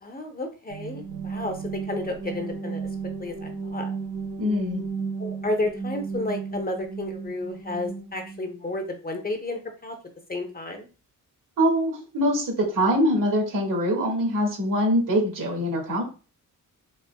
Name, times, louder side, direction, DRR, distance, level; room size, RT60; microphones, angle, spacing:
voice 1, 0.0-1.6 1.8-2.8 3.2-3.9 5.2-9.9 10.3-10.9, left 2 dB, 25° left, 5 dB, 0.6 m, -31 dB
sound 1, 0.7-8.5, right 5 dB, 45° right, 0.7 m, -34 dB
voice 2, 4.4-4.8 11.6-16.0, equal, 70° right, 0 dB, 1.6 m, -23 dB
4.1 x 2.9 x 2.2 m, 0.33 s
wide cardioid pair, 125°, 34 cm